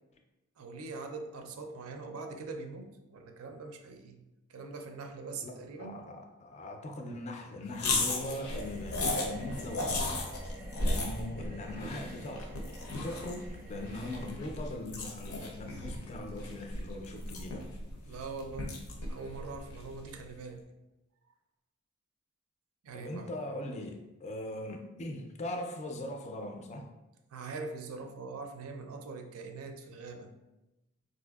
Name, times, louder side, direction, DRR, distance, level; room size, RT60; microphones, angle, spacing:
voice 1, 0.6-4.2 4.5-6.0 18.1-18.7 19.1-20.6 22.8-23.4 27.3-30.3, right 4 dB, 75° right, 5 dB, 0.4 m, -42 dB
voice 2, 5.4-10.3 10.8-17.7 18.1-18.2 22.9-26.9, left 1 dB, 30° left, 3 dB, 0.3 m, -41 dB
sound 1, 7.7-20.2, left 2 dB, 80° left, 0.6 m, -36 dB
sound 2, 8.5-14.3, right 1 dB, 15° right, 0.6 m, -50 dB
4.2 x 2.5 x 2.3 m, 1.0 s
head